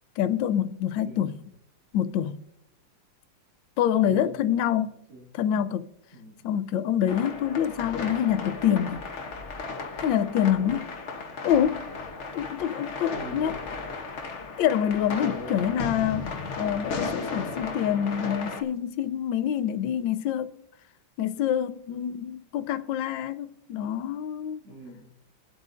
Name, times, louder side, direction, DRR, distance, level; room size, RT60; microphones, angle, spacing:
voice 1, 0.2-1.3 1.9-2.4 3.8-4.9 5.3-5.8 6.4-9.0 10.0-10.9 11.4-11.9 12.3-13.5 14.6-16.3 16.6-20.5 21.2-24.6, left 10 dB, 70° left, 1.2 m, -26 dB
voice 2, 1.0-1.3 3.9-4.8 5.1-5.3 6.1-6.5 10.6-10.9 13.1-13.7 15.2-15.8 24.6-25.1, right 1 dB, 70° right, 3.5 m, -43 dB
sound 1, 7.1-18.6, left 4 dB, 45° left, 0.9 m, -35 dB
19.5 x 7.9 x 2.5 m
omnidirectional pair, 2.4 m